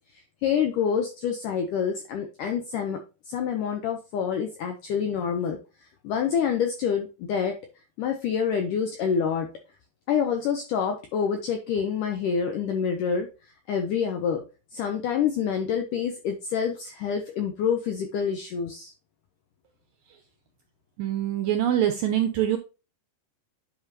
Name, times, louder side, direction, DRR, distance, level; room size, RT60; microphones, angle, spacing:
voice 1, 0.1-7.6 8.0-9.5 10.1-14.4 14.7-18.9, left 7 dB, 80° left, 5 dB, 1.8 m, -27 dB
voice 2, 21.0-22.6, right 11 dB, 80° right, 7 dB, 2.0 m, -24 dB
10.0 x 5.5 x 2.9 m, 0.31 s
omnidirectional pair, 4.9 m